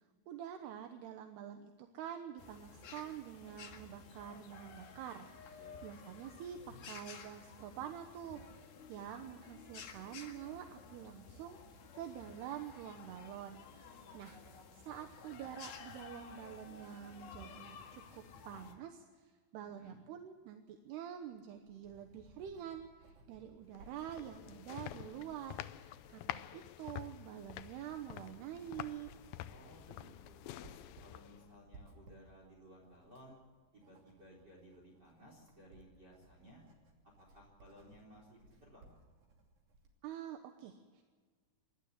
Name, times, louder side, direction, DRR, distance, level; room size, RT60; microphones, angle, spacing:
voice 1, 0.3-8.5 8.9-11.6 11.9-14.4 14.7-29.1 40.0-41.0, right 10 dB, 80° right, 6 dB, 3.1 m, -47 dB
sound 1, 2.4-18.8, left 5 dB, 65° left, 3.6 m, -53 dB
voice 2, 5.5-5.9 13.8-14.6 19.6-20.0 29.5-33.4 33.7-36.6 37.2-38.9, equal, 25° right, -1 dB, 4.2 m, -59 dB
Writing, 21.2-40.0, right 2 dB, 50° right, 3.9 m, -63 dB
sound 2, 23.7-31.6, left 14 dB, 85° left, 2.0 m, -48 dB
27.5 x 12.0 x 8.1 m, 1.5 s
omnidirectional pair, 4.8 m